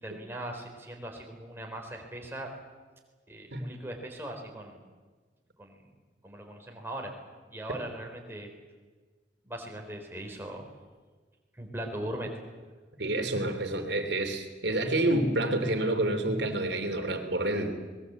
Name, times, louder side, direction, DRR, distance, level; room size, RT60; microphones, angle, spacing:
voice 1, 0.0-2.5 3.3-4.8 5.6-5.8 6.2-7.1 7.5-8.5 9.4-10.7 11.6-12.3, right 1 dB, 15° right, 1 dB, 3.9 m, -39 dB
voice 2, 13.0-17.7, right 1 dB, 70° right, 5 dB, 3.0 m, -28 dB
24.0 x 20.5 x 8.2 m, 1.4 s
head